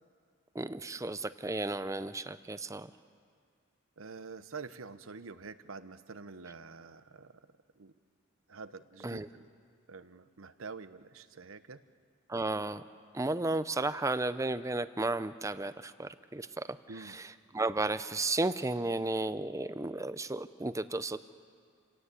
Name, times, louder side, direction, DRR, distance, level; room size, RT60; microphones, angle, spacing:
voice 1, 0.5-2.9 9.0-9.3 12.3-12.8 13.1-16.7 17.0-21.2, right 2 dB, 15° right, 13 dB, 0.6 m, -33 dB
voice 2, 4.0-7.4 7.8-7.9 8.5-9.4 9.9-11.8 16.9-17.2, right 4 dB, 75° right, 12 dB, 0.9 m, -47 dB
28.5 x 17.5 x 8.4 m, 2.2 s
head